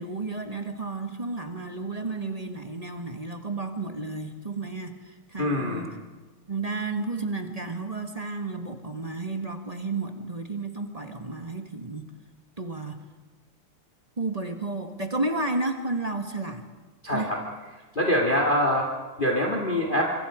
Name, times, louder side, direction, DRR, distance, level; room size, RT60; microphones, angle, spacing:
voice 1, 0.0-5.9 6.5-12.1 12.6-13.0 14.2-16.7 17.1-17.3, right 3 dB, 20° right, 6 dB, 1.3 m, -32 dB
voice 2, 5.4-5.9 17.0-17.4 18.0-18.9 19.2-20.1, left 1 dB, 25° left, 1 dB, 2.1 m, -24 dB
26.0 x 24.5 x 5.0 m, 1.3 s
omnidirectional pair, 2.4 m